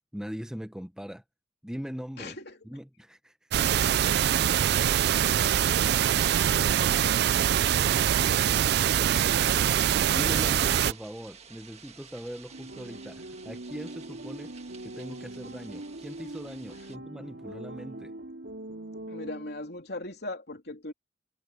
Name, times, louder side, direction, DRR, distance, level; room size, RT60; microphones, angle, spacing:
voice 1, 0.1-1.2 1.6-2.4 2.7-3.3 10.1-18.1, equal, 5° right, 0.8 m, -40 dB
voice 2, 2.2-2.7 19.1-20.9, left 2 dB, 60° left, 3.4 m, -38 dB
sound 1, 3.5-10.9, right 10 dB, 60° right, 0.3 m, -24 dB
sound 2, 8.7-17.0, right 6 dB, 35° right, 1.6 m, -51 dB
sound 3, 12.5-19.8, right 2 dB, 75° right, 2.8 m, -42 dB
head